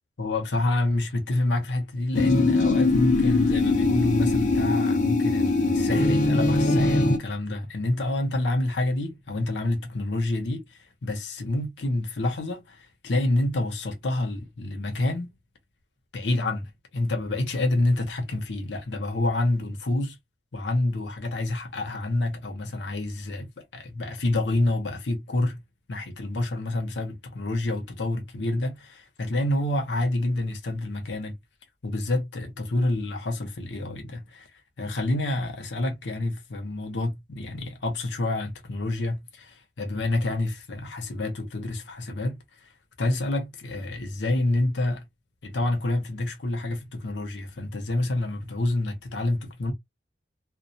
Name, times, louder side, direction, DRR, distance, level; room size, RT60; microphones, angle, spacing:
voice 1, 0.2-10.6 11.0-12.8 13.0-15.3 16.1-20.2 20.5-25.6 25.9-31.4 31.8-34.5 34.8-42.4 43.0-45.0 45.4-49.7, left 2 dB, 80° left, 0.7 m, -28 dB
sound 1, 2.1-7.2, left 3 dB, 45° left, 0.6 m, -21 dB
2.2 x 2.1 x 2.6 m
head